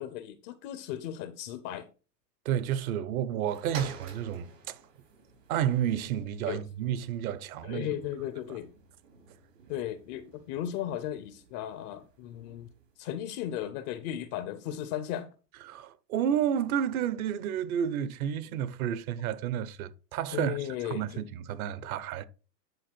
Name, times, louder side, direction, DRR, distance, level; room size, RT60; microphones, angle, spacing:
voice 1, 0.0-1.9 6.5-6.6 7.6-8.7 9.7-12.7 13.0-15.3 20.3-21.2, left 11 dB, 30° left, 0.4 m, -36 dB
voice 2, 2.4-4.8 5.5-7.9 15.6-22.2, right 9 dB, 60° right, 1.0 m, -31 dB
sound 1, 3.5-13.0 13.7-13.8, right 5 dB, 75° right, 4.2 m, -50 dB
9.9 x 4.4 x 4.5 m
hypercardioid pair, 125°, 49 cm